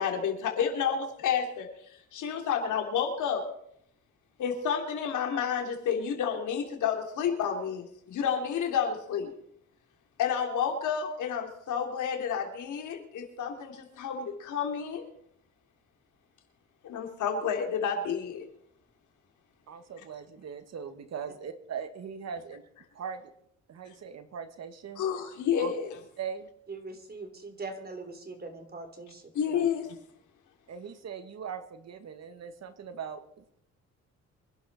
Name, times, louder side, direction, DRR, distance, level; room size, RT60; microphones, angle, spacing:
voice 1, 0.0-3.5 4.4-9.3 10.2-15.0 16.8-18.5 25.0-26.0 29.3-29.9, left 7 dB, 75° left, 3 dB, 3.4 m, -30 dB
voice 2, 19.7-22.6 23.0-23.2 23.7-25.0 25.6-25.7 26.2-26.5 30.7-33.6, right 7 dB, 60° right, 9 dB, 1.9 m, -40 dB
voice 3, 26.7-29.3, right 3 dB, 30° right, 6 dB, 3.6 m, -41 dB
25.0 x 11.5 x 4.3 m, 0.70 s
cardioid pair, 90°, 30 cm